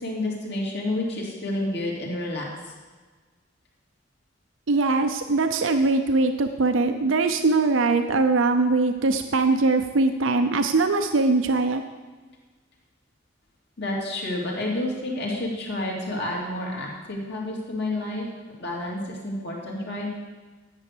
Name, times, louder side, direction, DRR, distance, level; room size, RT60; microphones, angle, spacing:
voice 1, 0.0-2.7 13.8-18.2 18.6-20.1, left 1 dB, 60° left, -2 dB, 2.6 m, -29 dB
voice 2, 4.7-11.8, right 3 dB, 80° right, 7 dB, 0.6 m, -21 dB
10.5 x 8.3 x 6.7 m, 1.4 s
head